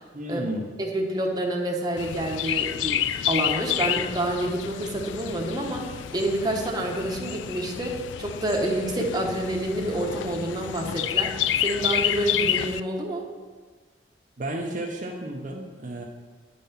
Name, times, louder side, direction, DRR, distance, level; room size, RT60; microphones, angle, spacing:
voice 1, 0.1-0.7 14.4-16.0, right 1 dB, 45° right, 0 dB, 0.8 m, -32 dB
voice 2, 0.8-5.8 6.1-11.3 11.6-13.3, right 1 dB, 20° right, 0 dB, 1.1 m, -28 dB
Chirp tweet, 2.0-12.8, left 10 dB, 85° left, 0.3 m, -29 dB
8.8 x 5.5 x 5.8 m, 1.4 s
head